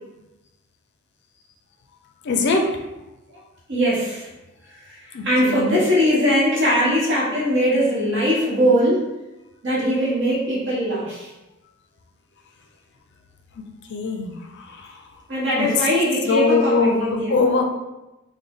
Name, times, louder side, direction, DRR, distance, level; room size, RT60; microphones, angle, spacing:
voice 1, 2.2-2.7 5.1-5.8 13.5-13.6 13.9-15.2 15.6-15.9 16.3-17.6, left 4 dB, 55° left, 3 dB, 0.4 m, -22 dB
voice 2, 3.7-4.3 5.2-9.0 9.6-11.3 15.3-17.3, equal, 60° right, -6 dB, 1.1 m, -20 dB
3.4 x 2.2 x 3.6 m, 1.0 s
head